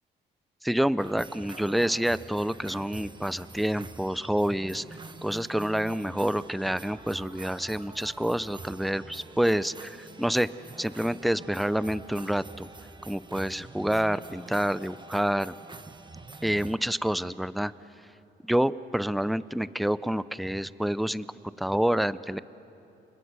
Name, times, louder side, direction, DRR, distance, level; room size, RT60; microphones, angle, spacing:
voice 1, 0.6-4.8 5.2-10.5 10.8-12.7 13.1-15.5 16.4-17.7 18.4-21.3 21.6-22.4, equal, ahead, 16 dB, 0.5 m, -28 dB
sound 1, 1.0-16.8, right 3 dB, 25° right, 1.3 m, -46 dB
30.0 x 25.5 x 6.3 m, 2.9 s
cardioid pair, 90°, 20 cm